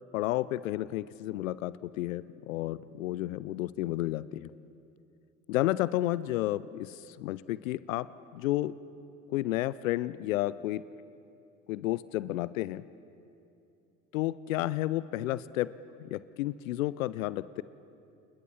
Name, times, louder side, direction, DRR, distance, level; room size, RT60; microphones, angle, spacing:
voice 1, 0.1-4.5 5.5-8.1 8.3-8.7 9.3-10.8 11.7-12.8 14.1-15.7 16.0-17.6, left 15 dB, 80° left, 18 dB, 0.6 m, -31 dB
29.0 x 20.0 x 7.1 m, 2.6 s
hypercardioid pair, 60°, 39 cm